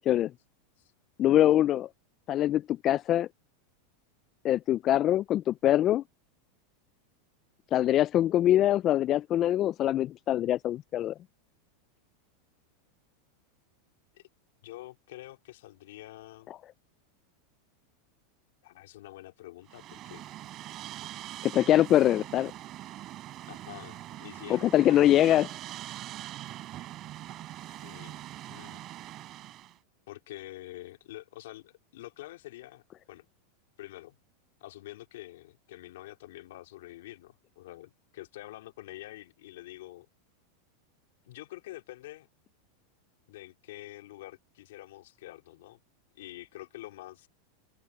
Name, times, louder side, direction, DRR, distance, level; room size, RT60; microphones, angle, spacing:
voice 1, 1.2-1.9 2.3-3.3 4.4-6.0 7.7-11.1 21.4-22.5 24.5-25.5, left 12 dB, 35° left, 0.3 m, -23 dB
voice 2, 14.6-16.5 18.6-20.2 23.5-25.4 27.6-28.8 29.3-29.4 30.1-32.8 33.1-33.3 33.8-34.1 34.6-40.1 41.2-42.3 43.3-45.8 46.1-47.3, left 16 dB, 75° left, 2.8 m, -46 dB
sound 1, 19.7-29.8, right 14 dB, 40° right, 5.3 m, -43 dB
open air
hypercardioid pair, 120°, 0 cm